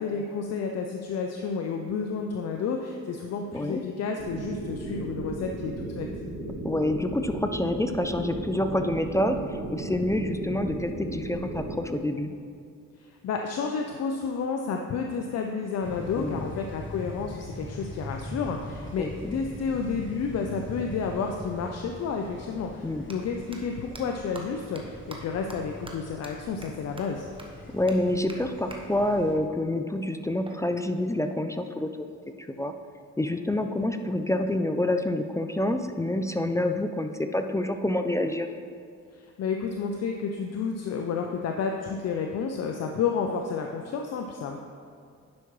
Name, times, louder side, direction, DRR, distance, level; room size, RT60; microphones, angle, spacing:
voice 1, 0.0-6.1 13.0-27.3 39.1-44.6, left 5 dB, 55° left, 3 dB, 0.6 m, -31 dB
sound 1, 4.2-11.8, right 2 dB, 70° right, 1.8 m, -35 dB
voice 2, 6.6-12.3 16.2-16.4 19.0-19.4 22.8-23.1 27.7-32.1 32.6-32.7 33.2-38.5, left 1 dB, 10° left, 6 dB, 0.4 m, -27 dB
sound 2, 15.8-29.3, left 1 dB, 40° left, 1.6 m, -42 dB
sound 3, 23.0-23.1 23.5-23.6 23.9-24.0 24.3-24.4 24.8-24.9 25.1-25.2 25.5-25.6 25.9-26.0 26.2-26.3 26.6-26.7 27.0-27.1 27.4-27.5 27.9-28.0 28.3-28.4 28.7-28.8 30.4-31.5, right 2 dB, 15° right, 1.0 m, -44 dB
10.5 x 5.8 x 3.1 m, 2.3 s
cardioid pair, 90°, 30 cm